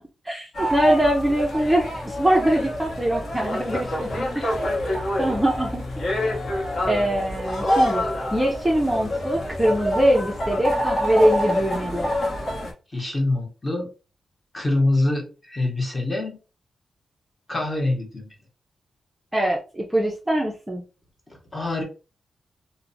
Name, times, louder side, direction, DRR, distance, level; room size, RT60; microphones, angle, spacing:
voice 1, 0.2-4.4 5.2-5.8 6.8-8.0 8.3-12.1 19.3-20.8, right 1 dB, 10° right, -2 dB, 0.4 m, -22 dB
sound 1, 0.5-12.7, left 1 dB, 55° left, 0.9 m, -26 dB
voice 2, 12.9-13.9 14.5-16.4 17.5-18.3 21.5-21.8, left 2 dB, 15° left, 0 dB, 0.8 m, -25 dB
2.8 x 2.0 x 2.6 m, 0.32 s
wide cardioid pair, 150°, 0 cm